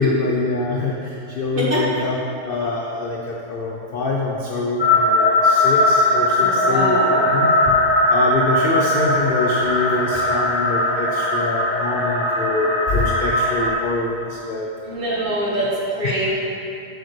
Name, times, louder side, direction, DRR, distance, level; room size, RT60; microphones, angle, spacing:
voice 1, 0.0-2.2 2.5-7.8 8.1-14.7 16.0-16.3, left 3 dB, 75° left, -2 dB, 0.5 m, -24 dB
sound 1, 4.8-13.7, left 1 dB, 15° left, 0.5 m, -19 dB
voice 2, 6.4-7.3 14.8-16.3, right 1 dB, 35° right, -7 dB, 1.6 m, -24 dB
7.8 x 6.5 x 3.2 m, 2.7 s
omnidirectional pair, 1.7 m